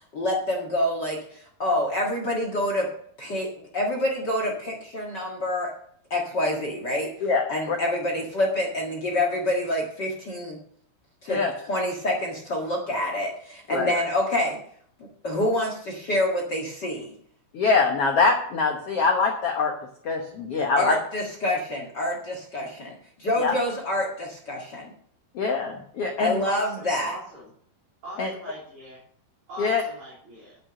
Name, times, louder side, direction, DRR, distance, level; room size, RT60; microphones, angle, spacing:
voice 1, 0.1-2.9 3.2-5.7 6.1-7.1 7.5-10.6 11.2-11.4 11.7-14.6 15.2-17.1 20.8-24.9 26.2-27.1, left 1 dB, 45° left, 1 dB, 1.5 m, -27 dB
voice 2, 7.2-7.8 11.3-11.5 13.7-13.9 17.5-19.7 20.0-21.0 23.4-23.5 25.3-26.4 28.2-28.3 29.6-29.8, left 4 dB, 85° left, 2 dB, 1.3 m, -23 dB
voice 3, 26.4-27.5 28.0-29.0 29.5-30.6, equal, 35° right, -6 dB, 3.9 m, -41 dB
9.0 x 8.5 x 6.8 m, 0.62 s
omnidirectional pair, 4.6 m